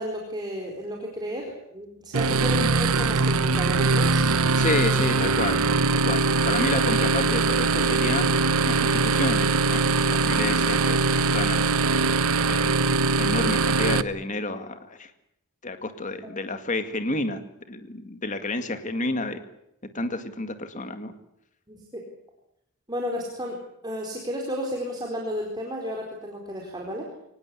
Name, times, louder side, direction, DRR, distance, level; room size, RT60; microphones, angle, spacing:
voice 1, 0.0-4.2 21.7-22.0 22.9-27.1, equal, 20° right, 0 dB, 4.1 m, -33 dB
sound 1, 2.1-14.0, right 4 dB, 70° right, 0.9 m, -22 dB
voice 2, 4.6-5.6 5.9-8.4 8.7-12.0 12.5-12.8 13.2-15.1 15.6-17.4 17.7-19.4 19.9-21.1, left 2 dB, 35° left, 8 dB, 2.0 m, -30 dB
24.0 x 19.5 x 8.5 m, 0.79 s
head